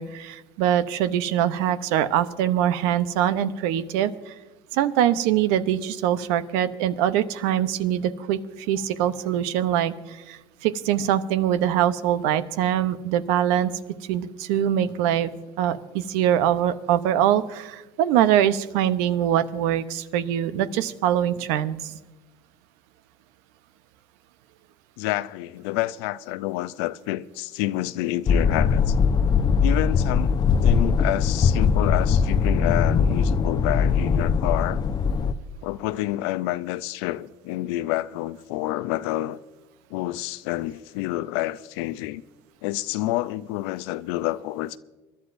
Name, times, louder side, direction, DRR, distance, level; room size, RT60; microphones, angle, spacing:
voice 1, 0.0-4.3 4.7-8.4 8.7-13.7 14.1-15.3 15.6-22.0, right 11 dB, 75° right, 0.8 m, -23 dB
voice 2, 25.0-29.0 29.6-30.4 30.6-34.8 35.6-39.4 39.9-42.2 42.6-44.8, left 16 dB, 75° left, 0.5 m, -28 dB
sound 1, 28.3-35.3, left 6 dB, 30° left, 0.7 m, -21 dB
26.5 x 12.0 x 2.6 m
supercardioid pair, 90°, 13 cm